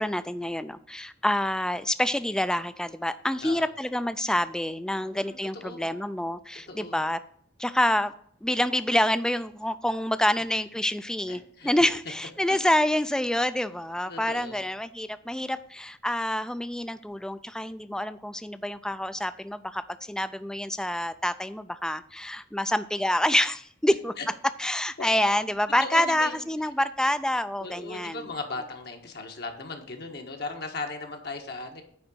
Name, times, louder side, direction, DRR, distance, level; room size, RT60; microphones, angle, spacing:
voice 1, 0.0-7.2 7.6-8.1 8.4-19.8 20.1-24.1 24.6-28.3, left 1 dB, 5° left, 13 dB, 0.4 m, -27 dB
voice 2, 5.0-5.9 6.7-7.0 11.3-11.7 12.5-12.6 14.1-14.7 24.2-24.3 25.0-25.1 25.8-26.5 27.6-31.8, left 3 dB, 60° left, 4 dB, 1.4 m, -37 dB
9.6 x 3.9 x 6.2 m, 0.66 s
head